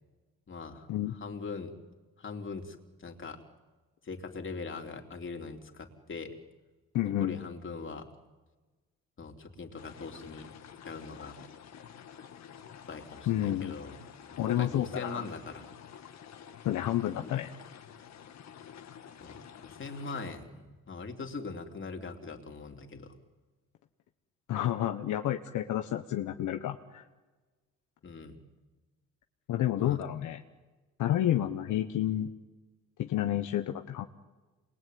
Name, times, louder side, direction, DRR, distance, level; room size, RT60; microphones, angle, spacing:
voice 1, 0.5-0.9 1.2-1.7 2.2-3.4 4.0-6.3 7.0-8.1 9.2-10.5 10.9-11.4 12.9-14.0 14.3-15.7 19.2-23.1 28.0-28.4 29.8-30.0, left 4 dB, 40° left, 3 dB, 3.7 m, -41 dB
voice 2, 6.9-7.4 13.3-13.7 14.4-15.2 16.6-17.5 24.5-27.0 29.5-30.4 31.0-32.3 33.0-34.1, left 12 dB, 80° left, 6 dB, 1.3 m, -30 dB
sound 1, 9.8-20.4, left 8 dB, 60° left, 2.0 m, -50 dB
27.5 x 22.0 x 9.5 m, 1.3 s
cardioid pair, 90°, 30 cm